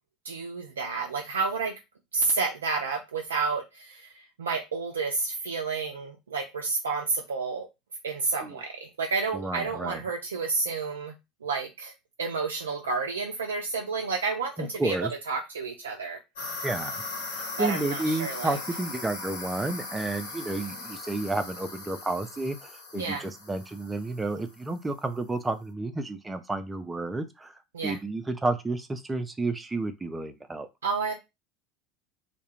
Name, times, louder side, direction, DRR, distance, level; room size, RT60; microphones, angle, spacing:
voice 1, 0.2-1.7 2.1-7.7 8.0-11.1 11.4-11.9 12.2-15.0 15.3-16.2 17.6-18.6 22.9-23.2 27.7-28.0 30.8-31.1, right 4 dB, 75° right, 2 dB, 0.3 m, -30 dB
voice 2, 9.3-10.0 14.6-15.1 16.6-17.0 17.3-27.5 27.8-30.7, right 2 dB, 15° right, 9 dB, 0.4 m, -31 dB
sound 1, 16.4-24.6, left 3 dB, 70° left, 0.9 m, -39 dB
2.3 x 2.1 x 3.0 m, 0.23 s
figure-of-eight pair, 75°, 0 cm